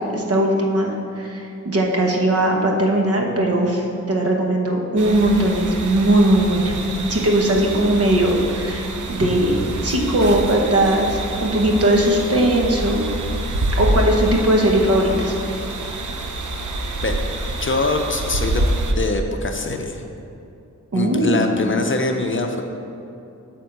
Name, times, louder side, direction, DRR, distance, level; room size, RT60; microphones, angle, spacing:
voice 1, 0.1-6.7 7.1-13.0 13.8-15.4 20.9-21.5, right 1 dB, 50° right, 0 dB, 1.1 m, -19 dB
sound 1, 5.0-18.9, right 2 dB, 65° right, 0.8 m, -27 dB
voice 2, 17.4-18.7 19.0-20.0 20.9-22.6, left 3 dB, 40° left, 4 dB, 0.6 m, -23 dB
8.9 x 3.6 x 6.5 m, 2.7 s
wide cardioid pair, 100°, 32 cm